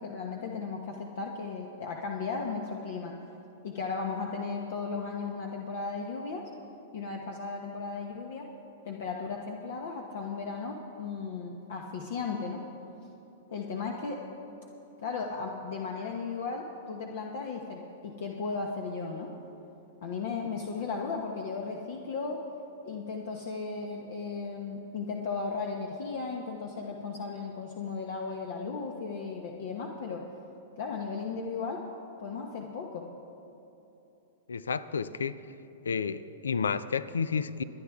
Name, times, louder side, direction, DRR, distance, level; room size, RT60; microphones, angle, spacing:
voice 1, 0.0-3.2 3.6-6.5 6.9-8.5 8.8-12.7 13.5-14.2 15.0-19.3 20.0-22.4 22.8-30.2 30.8-31.8 32.2-33.1, left 4 dB, 65° left, 1 dB, 1.2 m, -35 dB
voice 2, 34.5-35.4 35.9-37.6, left 6 dB, 85° left, 16 dB, 0.5 m, -31 dB
25.0 x 9.9 x 3.6 m, 3.0 s
hypercardioid pair, 115°, 0 cm